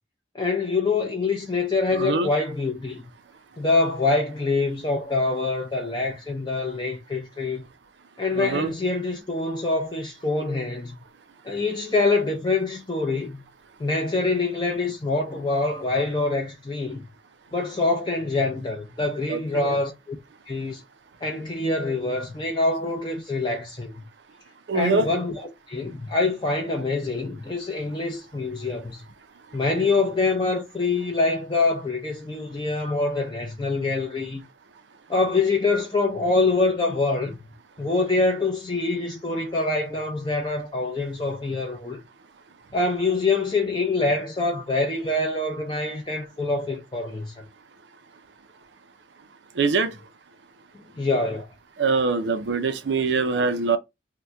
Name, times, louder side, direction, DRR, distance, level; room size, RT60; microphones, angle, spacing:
voice 1, 0.3-3.0 3.6-7.6 8.2-11.0 11.4-13.4 13.8-17.1 17.5-20.2 20.5-20.8 21.2-24.0 24.7-29.1 29.5-34.4 35.1-37.5 37.8-42.0 42.7-47.4 51.0-51.5, left 3 dB, 25° left, 0.5 m, -25 dB
voice 2, 8.4-8.7 19.3-19.7 24.7-25.1 49.6-49.9 51.8-53.8, right 4 dB, 80° right, 0.5 m, -23 dB
2.7 x 2.1 x 3.5 m
head